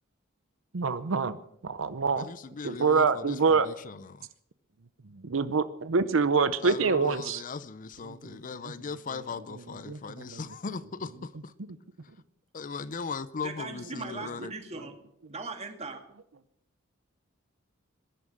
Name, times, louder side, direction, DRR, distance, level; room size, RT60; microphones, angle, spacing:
voice 1, 0.7-1.4 1.6-2.3 2.6-3.7 5.2-7.4 8.2-8.4 9.9-10.0 10.3-10.4, right 5 dB, 70° right, 13 dB, 0.7 m, -25 dB
voice 2, 2.2-4.3 6.6-11.5 12.5-14.5, left 5 dB, 40° left, 16 dB, 0.5 m, -38 dB
voice 3, 13.4-14.9 15.3-16.0, right 3 dB, 30° right, 5 dB, 2.3 m, -39 dB
20.0 x 11.0 x 6.5 m, 0.75 s
head